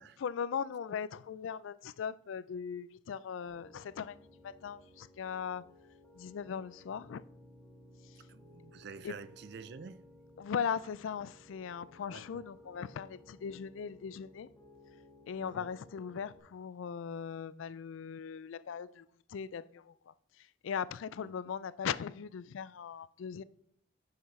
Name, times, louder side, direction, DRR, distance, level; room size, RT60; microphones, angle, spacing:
voice 1, 0.2-4.2 4.4-5.7 6.1-7.2 9.0-9.1 10.4-14.5 15.3-20.1 20.6-23.4, left 7 dB, 75° left, 0.3 m, -39 dB
Piano, 3.5-16.4, left 1 dB, 10° left, 1.4 m, -59 dB
voice 2, 8.2-10.1 12.1-12.5 15.4-15.7 21.2-21.5, right 5 dB, 55° right, 0.4 m, -49 dB
10.5 x 5.7 x 3.2 m
head